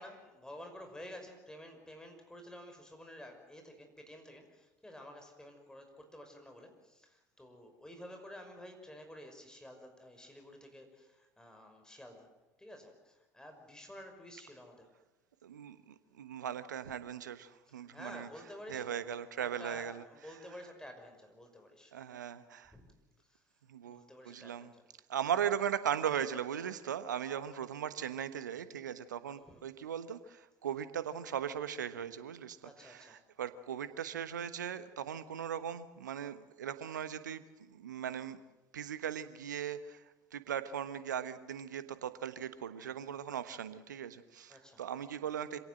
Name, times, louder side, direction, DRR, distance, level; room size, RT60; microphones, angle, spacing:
voice 1, 0.0-12.3 12.6-14.9 17.9-19.1 19.3-21.9 22.7-22.9 23.3-23.4 23.8-24.8 29.3-29.6 32.6-33.2 44.5-44.8, left 1 dB, 5° left, 4 dB, 5.8 m, -51 dB
voice 2, 15.4-18.3 18.7-20.0 21.9-22.7 23.7-24.7 25.1-38.4 38.7-40.0 40.3-45.6, right 9 dB, 80° right, 13 dB, 1.2 m, -38 dB
26.5 x 17.5 x 7.8 m, 1.1 s
figure-of-eight pair, 65°, 10 cm